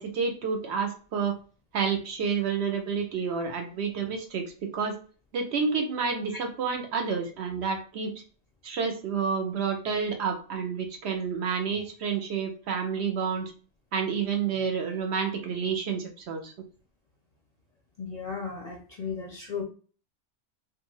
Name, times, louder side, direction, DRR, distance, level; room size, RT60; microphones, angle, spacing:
voice 1, 0.0-1.4 1.7-5.0 5.3-8.1 8.6-13.5 13.9-16.5, right 6 dB, 65° right, 4 dB, 0.8 m, -29 dB
voice 2, 18.0-19.6, left 5 dB, 45° left, -1 dB, 0.5 m, -35 dB
2.5 x 2.3 x 3.0 m, 0.38 s
omnidirectional pair, 1.3 m